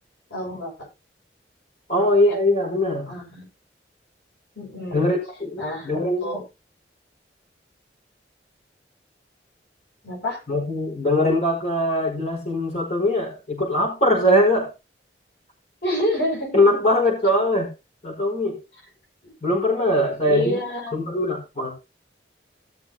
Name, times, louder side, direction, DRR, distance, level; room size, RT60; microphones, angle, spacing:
voice 1, 0.3-0.9 1.9-2.4 3.1-3.5 4.6-5.1 5.6-6.4 10.0-10.4 15.8-16.6 19.2-19.4 20.2-20.9, equal, 90° left, -2 dB, 6.7 m, -29 dB
voice 2, 1.9-3.1 4.9-6.3 10.5-14.7 16.5-17.7 18.0-18.6 19.4-20.6 20.9-21.7, left 1 dB, 40° left, -1 dB, 5.3 m, -21 dB
17.5 x 7.0 x 2.9 m, 0.26 s
head